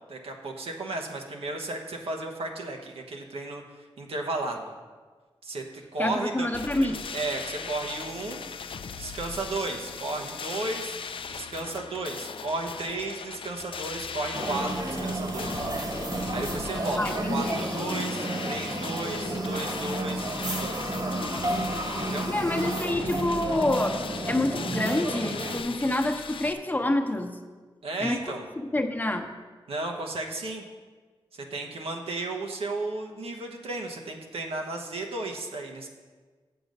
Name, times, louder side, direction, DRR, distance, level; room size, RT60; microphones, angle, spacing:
voice 1, 0.1-3.6 4.0-4.7 5.4-6.5 6.8-8.4 8.9-11.0 11.3-15.6 16.3-21.0 22.0-22.3 27.8-28.5 29.7-30.6 31.3-35.9, right 2 dB, 85° right, 1 dB, 1.1 m, -34 dB
voice 2, 6.0-7.0 17.0-17.6 22.3-24.0 24.3-27.4 28.0-29.3, left 1 dB, 20° left, 3 dB, 0.9 m, -27 dB
sound 1, 6.5-26.5, left 6 dB, 65° left, 0.4 m, -39 dB
sound 2, 14.3-25.6, right 1 dB, 45° right, 1.3 m, -31 dB
7.8 x 6.9 x 5.4 m, 1.4 s
cardioid pair, 65°, 10 cm